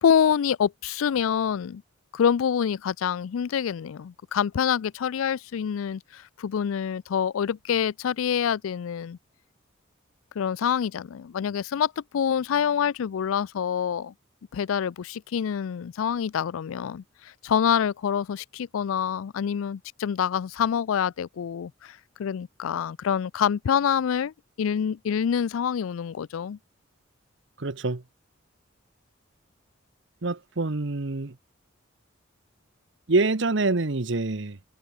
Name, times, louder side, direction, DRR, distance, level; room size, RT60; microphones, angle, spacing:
voice 1, 0.0-1.8 2.1-9.2 10.4-14.1 14.5-26.6, left 8 dB, 85° left, 0.4 m, -26 dB
voice 2, 27.6-28.0 30.2-31.3 33.1-34.6, right 3 dB, 60° right, 1.0 m, -25 dB
head